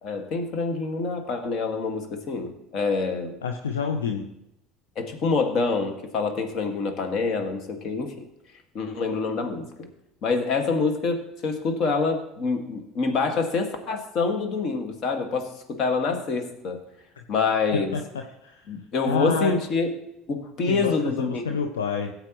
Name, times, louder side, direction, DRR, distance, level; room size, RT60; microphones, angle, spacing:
voice 1, 0.0-3.3 5.0-8.1 8.7-9.6 10.2-16.8 17.3-18.0 18.7-19.9 20.3-21.4, left 4 dB, 50° left, 5 dB, 1.8 m, -26 dB
voice 2, 3.4-4.3 17.7-18.0 18.4-18.6 19.1-19.6 20.7-22.1, left 6 dB, 80° left, 4 dB, 0.6 m, -28 dB
17.0 x 8.0 x 3.1 m, 0.85 s
hypercardioid pair, 65°, 0 cm